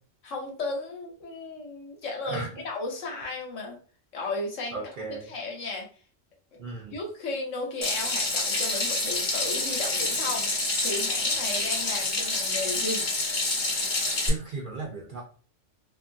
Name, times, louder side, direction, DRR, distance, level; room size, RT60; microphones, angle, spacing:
voice 1, 0.2-3.8 4.1-4.8 5.2-5.9 6.9-13.0, left 3 dB, 75° left, 0 dB, 1.2 m, -34 dB
voice 2, 4.7-5.3 6.6-7.0 14.2-15.2, right 4 dB, 60° right, -2 dB, 0.5 m, -35 dB
Water tap faucet / Sink (filling or washing), 7.8-14.3, left 2 dB, 45° left, 0.8 m, -27 dB
2.5 x 2.4 x 2.5 m, 0.39 s
omnidirectional pair, 1.3 m